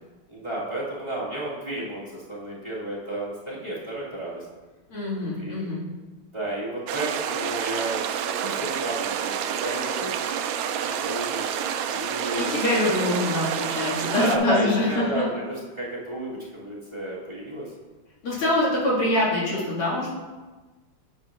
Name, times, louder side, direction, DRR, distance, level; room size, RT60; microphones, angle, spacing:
voice 1, 0.3-4.4 5.1-5.7 6.3-10.2 10.8-12.8 14.0-17.7, right 1 dB, 20° right, -9 dB, 2.2 m, -32 dB
voice 2, 4.9-5.8 12.4-15.2 18.2-20.1, left 1 dB, 80° left, -6 dB, 3.1 m, -24 dB
sound 1, 6.9-14.4, right 8 dB, 75° right, 1.2 m, -28 dB
9.3 x 7.9 x 2.5 m, 1.2 s
omnidirectional pair, 2.4 m